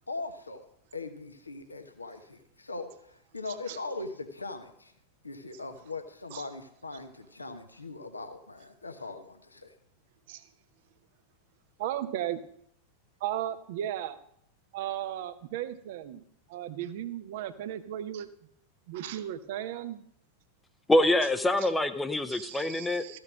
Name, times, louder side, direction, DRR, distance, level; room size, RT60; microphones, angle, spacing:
voice 1, 0.1-0.7 0.9-4.9 5.2-9.7, left 3 dB, 80° left, 1.1 m, -40 dB
voice 2, 11.8-12.4 13.2-14.2 14.7-16.2 16.5-18.3 18.9-20.0 21.6-21.7 22.3-23.2, right 11 dB, 50° right, 0.8 m, -35 dB
voice 3, 20.9-23.0, left 1 dB, 10° left, 0.7 m, -25 dB
14.0 x 6.5 x 6.3 m
figure-of-eight pair, 90°, 0 cm